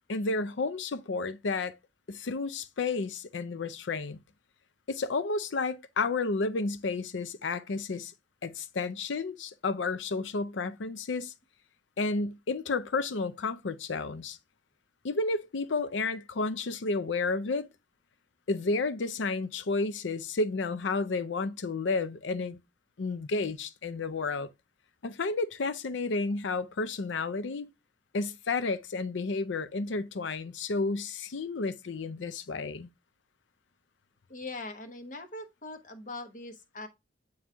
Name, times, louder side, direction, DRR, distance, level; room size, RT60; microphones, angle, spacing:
voice 1, 0.1-1.8 2.1-4.2 4.9-8.1 8.4-11.3 12.0-14.4 15.0-17.7 18.5-22.6 23.0-24.5 25.0-27.7 28.1-32.9, left 3 dB, 75° left, 0.5 m, -31 dB
voice 2, 34.3-36.9, left 2 dB, 45° left, 1.0 m, -41 dB
8.8 x 3.1 x 3.4 m
head